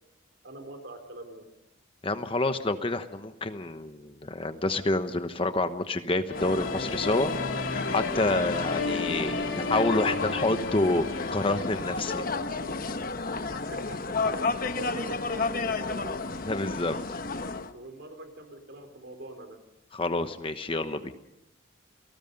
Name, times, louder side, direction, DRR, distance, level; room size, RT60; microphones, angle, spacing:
voice 1, 0.4-1.4 13.5-16.2 17.7-19.6, right 1 dB, 60° right, 6 dB, 4.0 m, -43 dB
voice 2, 2.0-7.3 7.9-12.2 16.4-17.0 19.9-21.1, left 2 dB, 25° left, 9 dB, 1.1 m, -28 dB
sound 1, 6.3-12.9, left 3 dB, 75° left, 3.3 m, -34 dB
sound 2, 6.3-17.7, left 3 dB, 45° left, 1.1 m, -32 dB
28.5 x 19.0 x 5.4 m, 0.87 s
head